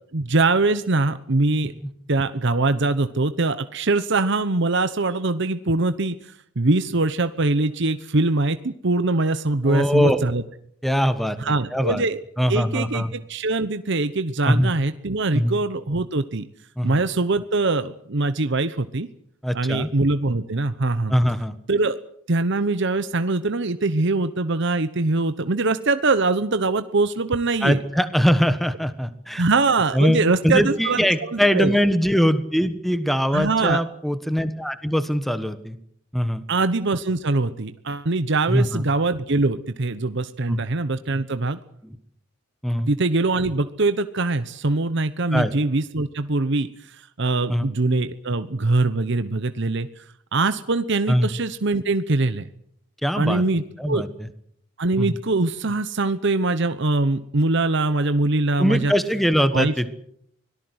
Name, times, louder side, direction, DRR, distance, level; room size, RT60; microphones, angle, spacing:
voice 1, 0.1-1.7 2.1-10.4 11.4-12.2 12.5-16.5 16.8-19.1 19.5-21.1 21.7-22.0 22.3-27.8 29.3-31.8 33.3-33.8 36.5-41.6 42.9-49.9 50.3-52.5 53.2-54.0 54.8-58.9 59.5-59.7, right 3 dB, 60° right, 11 dB, 1.0 m, -23 dB
voice 2, 9.6-10.2 10.8-12.0 12.4-13.1 14.4-14.7 15.3-15.5 16.8-17.0 19.4-19.9 21.1-21.5 27.6-29.4 29.9-35.8 36.1-36.4 38.5-38.8 40.5-40.6 41.8-42.0 42.6-42.9 45.3-45.5 47.5-47.6 51.1-51.3 53.0-53.4 53.8-54.1 55.0-55.1 58.6-59.9, equal, ahead, 11 dB, 1.3 m, -22 dB
24.5 x 18.0 x 8.0 m, 0.70 s
head